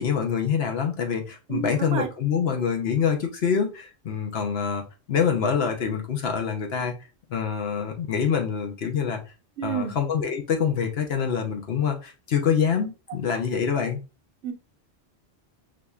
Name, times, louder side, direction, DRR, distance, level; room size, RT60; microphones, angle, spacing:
voice 1, 0.0-4.8 5.1-6.9 7.3-9.2 9.6-14.0, left 7 dB, 65° left, 1.0 m, -25 dB
voice 2, 1.5-2.1 9.6-9.9 13.3-13.4 14.4-14.5, right 7 dB, 90° right, 1.0 m, -30 dB
4.8 x 2.6 x 2.3 m
omnidirectional pair, 1.2 m